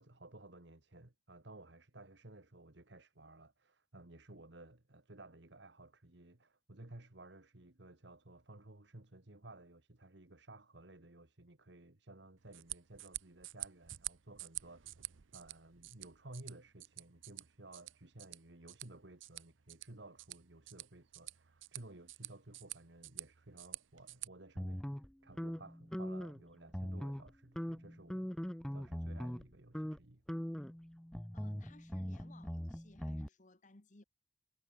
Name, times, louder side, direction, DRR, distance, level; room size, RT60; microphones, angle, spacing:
voice 1, 0.0-14.9 15.3-24.9 25.2-30.2, right 2 dB, 60° right, 1.8 m, -56 dB
sound 1, 12.4-24.3, right 18 dB, 75° right, 0.7 m, -49 dB
sound 2, 24.6-26.4 26.7-27.3 27.6-29.4 29.7-30.0 30.3-33.3, equal, 5° left, 0.3 m, -41 dB
voice 2, 31.1-34.0, left 2 dB, 40° left, 1.2 m, -61 dB
head